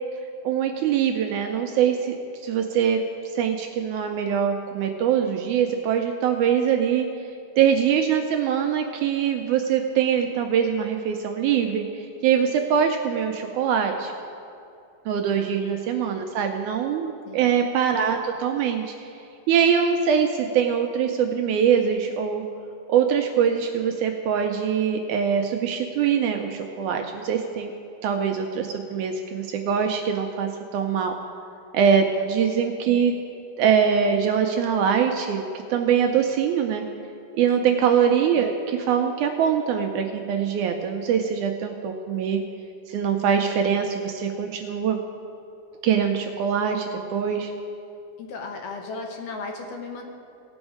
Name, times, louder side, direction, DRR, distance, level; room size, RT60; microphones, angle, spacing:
voice 1, 0.4-2.2 2.4-3.0 3.3-7.1 7.6-14.1 15.1-18.9 19.5-22.4 22.9-27.7 28.0-31.2 31.7-33.1 33.6-35.4 35.7-36.8 37.4-42.4 42.9-45.0 45.8-47.5, right 7 dB, 80° right, 4 dB, 1.9 m, -23 dB
voice 2, 48.2-50.0, left 3 dB, 75° left, 2 dB, 2.6 m, -36 dB
17.5 x 6.2 x 4.9 m, 2.6 s
omnidirectional pair, 3.9 m